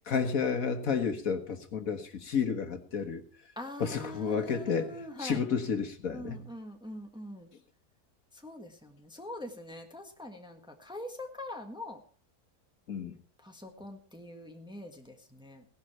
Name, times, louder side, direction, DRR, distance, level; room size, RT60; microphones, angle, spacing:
voice 1, 0.1-3.2 3.8-6.5 12.9-13.2, left 6 dB, 65° left, 7 dB, 1.7 m, -31 dB
voice 2, 3.5-5.4 6.1-7.5 8.3-12.0 13.4-15.6, left 1 dB, 5° right, 3 dB, 1.5 m, -43 dB
17.0 x 11.5 x 4.4 m, 0.41 s
omnidirectional pair, 1.6 m